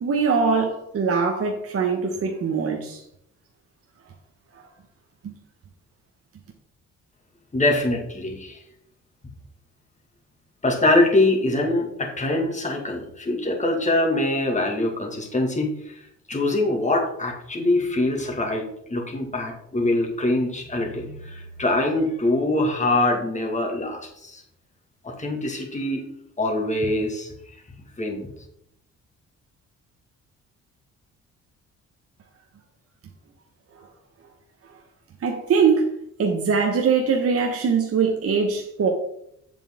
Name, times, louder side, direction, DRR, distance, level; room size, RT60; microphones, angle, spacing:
voice 1, 0.0-3.0 5.2-5.3 33.7-33.9 35.2-38.9, right 5 dB, 50° right, 1.3 m, -22 dB
voice 2, 7.5-8.6 10.6-16.0 16.3-24.4 25.0-26.0 26.4-27.3 28.0-28.3, left 2 dB, 25° left, 2.2 m, -23 dB
8.3 x 7.4 x 3.7 m
cardioid pair, 90°, 30 cm